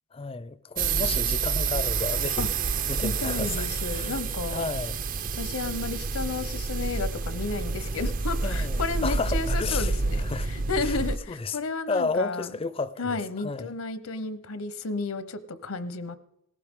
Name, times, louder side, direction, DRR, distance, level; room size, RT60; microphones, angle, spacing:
voice 1, 0.1-2.5 2.9-3.7 3.9-4.1 4.5-5.0 8.4-9.9 10.2-10.5 10.8-11.0 11.3-11.6 11.9-12.9 13.4-13.7, left 4 dB, 25° left, 0.4 m, -32 dB
sound 1, 0.8-11.2, right 4 dB, 40° right, 0.5 m, -28 dB
voice 2, 3.0-4.6 5.4-12.5 13.0-16.2, left 3 dB, 80° left, 0.9 m, -32 dB
18.0 x 14.5 x 3.7 m
head